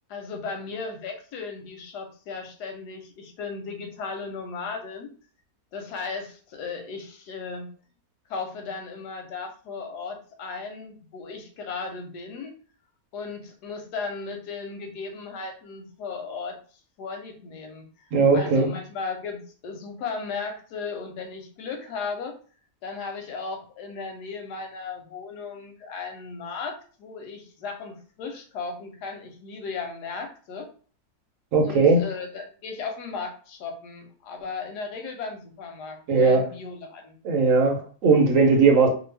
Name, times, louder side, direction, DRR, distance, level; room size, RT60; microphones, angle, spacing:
voice 1, 0.1-5.1 5.7-7.7 8.3-12.5 13.1-16.6 17.0-18.1 18.3-22.4 22.8-30.7 31.6-37.2, left 4 dB, 90° left, 1.3 m, -36 dB
voice 2, 18.1-18.7 31.5-32.1 36.1-36.5 37.2-38.9, right 4 dB, 60° right, 1.0 m, -18 dB
2.9 x 2.3 x 3.3 m
omnidirectional pair, 1.7 m